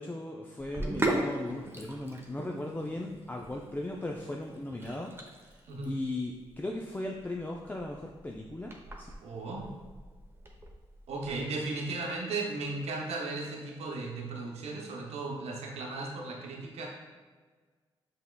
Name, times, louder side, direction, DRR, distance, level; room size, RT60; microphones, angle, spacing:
voice 1, 0.0-5.1 5.4-5.6 5.8-9.1, left 1 dB, 15° left, 0 dB, 0.4 m, -37 dB
Sink (filling or washing), 0.6-11.4, right 2 dB, 20° right, 0.8 m, -39 dB
voice 2, 9.2-9.7 11.1-16.9, right 3 dB, 80° right, 0 dB, 0.8 m, -36 dB
5.5 x 3.5 x 2.2 m, 1.5 s
supercardioid pair, 55°, 11 cm